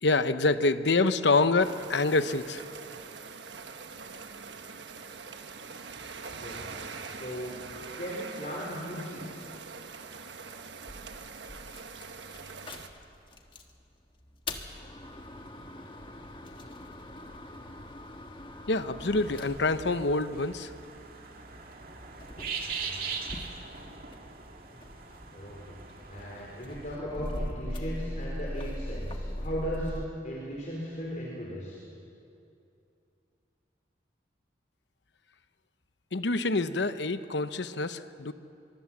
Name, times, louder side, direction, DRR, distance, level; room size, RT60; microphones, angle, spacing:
voice 1, 0.0-2.6 18.7-20.7 36.1-38.3, left 3 dB, 75° left, 12 dB, 0.9 m, -26 dB
sound 1, 1.6-12.9, right 5 dB, 75° right, 1.3 m, -43 dB
voice 2, 6.3-6.7 7.2-7.6 8.0-9.4 22.7-23.0 24.7-24.8 25.3-25.8 26.1-30.0 30.2-31.8, equal, 45° left, -3 dB, 4.0 m, -37 dB
sound 2, 10.9-13.7 14.2-21.0 21.7-24.4 24.7-30.1, left 1 dB, 25° left, 1.5 m, -40 dB
sound 3, 19.0-26.9, right 5 dB, 50° right, 2.4 m, -41 dB
24.0 x 23.0 x 7.3 m, 2.7 s
head